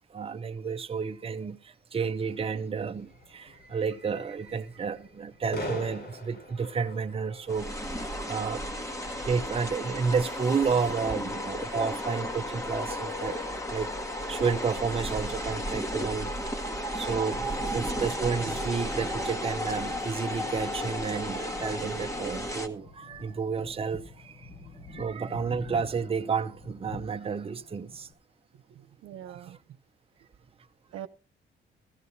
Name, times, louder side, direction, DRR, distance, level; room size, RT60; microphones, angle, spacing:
voice 1, 0.1-8.7 9.2-13.9 14.3-16.5 16.9-24.5 24.9-28.1, right 5 dB, 30° right, 0.8 m, -31 dB
sound 1, 2.2-15.4, left 1 dB, 55° left, 4.9 m, -46 dB
sound 2, 7.5-22.7, equal, 15° left, 1.4 m, -34 dB
sound 3, 17.2-28.1, left 2 dB, 85° left, 4.4 m, -48 dB
voice 2, 28.5-29.8 30.9-31.1, right 11 dB, 80° right, 0.8 m, -44 dB
15.0 x 14.0 x 2.8 m
cardioid pair, 90°, 20 cm